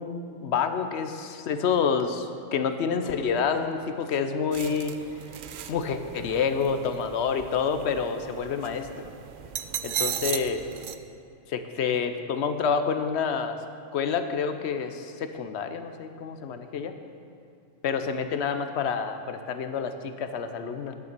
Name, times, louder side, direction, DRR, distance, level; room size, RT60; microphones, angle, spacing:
voice 1, 0.0-4.9 5.7-8.9 9.8-10.6 11.5-13.6 13.9-16.9 17.8-20.9, left 6 dB, 65° left, 8 dB, 0.9 m, -28 dB
sound 1, 4.5-10.9, right 9 dB, 60° right, 0.5 m, -36 dB
11.0 x 6.8 x 6.7 m, 2.5 s
omnidirectional pair, 1.3 m